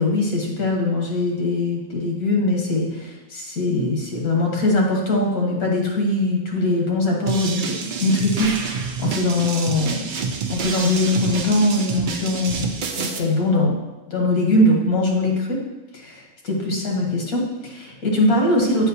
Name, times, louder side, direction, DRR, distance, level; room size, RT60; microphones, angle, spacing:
voice 1, 0.0-10.1 10.5-13.8 14.1-15.6 15.9-18.9, left 2 dB, 85° left, 0 dB, 1.6 m, -21 dB
sound 1, 7.3-13.2, right 5 dB, 85° right, 0.4 m, -28 dB
7.1 x 4.8 x 2.7 m, 1.1 s
omnidirectional pair, 1.5 m